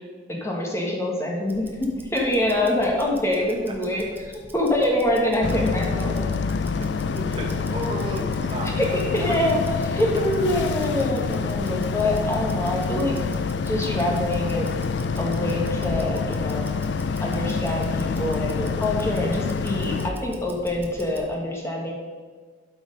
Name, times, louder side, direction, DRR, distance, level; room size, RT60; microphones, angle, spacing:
voice 1, 0.3-4.0 4.5-6.1 8.8-8.9 9.1-9.6 9.9-13.2 13.7-14.7 15.2-16.7 17.2-21.9, left 1 dB, 15° left, -1 dB, 1.5 m, -25 dB
Tick-tock, 1.4-21.3, equal, 10° right, 0.8 m, -42 dB
Boat Water vehicle, 5.4-20.1, left 5 dB, 65° left, 0.4 m, -27 dB
voice 2, 6.8-9.4, equal, 25° right, -1 dB, 1.4 m, -34 dB
11.5 x 5.0 x 5.2 m, 1.5 s
head